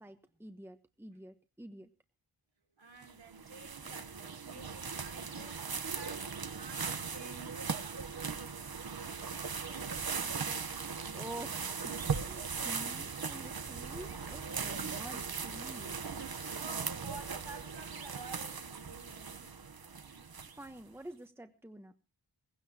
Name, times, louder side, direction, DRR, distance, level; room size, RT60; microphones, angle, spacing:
voice 1, 0.0-1.9 10.7-16.0 19.9-20.1 20.6-21.9, right 1 dB, 5° right, 1.2 m, -48 dB
voice 2, 2.8-10.0 16.5-19.5, right 4 dB, 65° right, 4.8 m, -52 dB
sound 1, 3.0-20.8, right 5 dB, 45° right, 1.1 m, -39 dB
19.0 x 16.5 x 2.9 m
wide cardioid pair, 75°, 50 cm